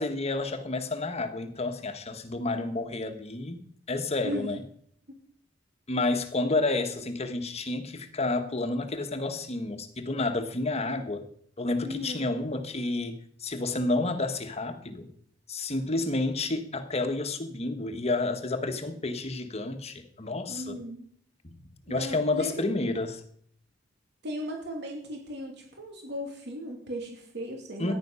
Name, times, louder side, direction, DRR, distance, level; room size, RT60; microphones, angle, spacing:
voice 1, 0.0-3.6 3.9-4.6 5.9-11.2 11.6-15.1 15.5-20.8 21.9-23.2 27.8-27.9, left 2 dB, 35° left, 1.3 m, -30 dB
voice 2, 11.8-12.3 20.5-21.1 21.9-22.5 24.2-27.9, equal, 65° right, 2.9 m, -36 dB
14.5 x 10.5 x 5.6 m
head